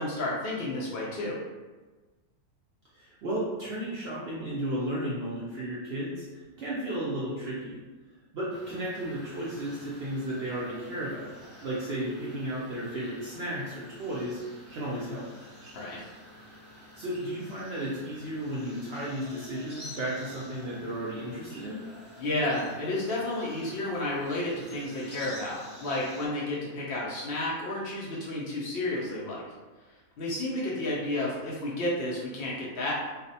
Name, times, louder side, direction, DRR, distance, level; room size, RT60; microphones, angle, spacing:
voice 1, 0.0-1.4 15.7-16.0 22.2-29.4 30.2-32.9, left 1 dB, 85° left, -5 dB, 0.5 m, -31 dB
voice 2, 2.9-7.8 8.3-11.3 11.6-14.4 14.7-15.3 17.0-21.9, right 1 dB, 75° right, -7 dB, 0.5 m, -34 dB
sound 1, 8.5-26.3, left 1 dB, 25° right, 0.9 m, -49 dB
2.5 x 2.0 x 2.7 m, 1.3 s
omnidirectional pair, 1.6 m